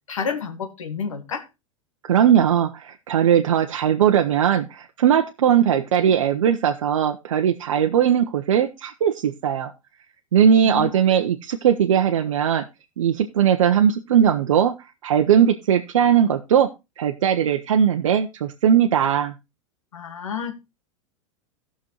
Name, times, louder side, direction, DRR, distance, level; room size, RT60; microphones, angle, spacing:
voice 1, 0.1-1.5 10.6-10.9 19.9-20.5, left 6 dB, 80° left, 5 dB, 1.5 m, -29 dB
voice 2, 2.0-9.7 10.3-12.6 13.0-14.7 15.0-16.7 17.0-19.3, right 9 dB, 75° right, 5 dB, 0.8 m, -19 dB
18.0 x 6.2 x 3.0 m, 0.25 s
hypercardioid pair, 95°, 16 cm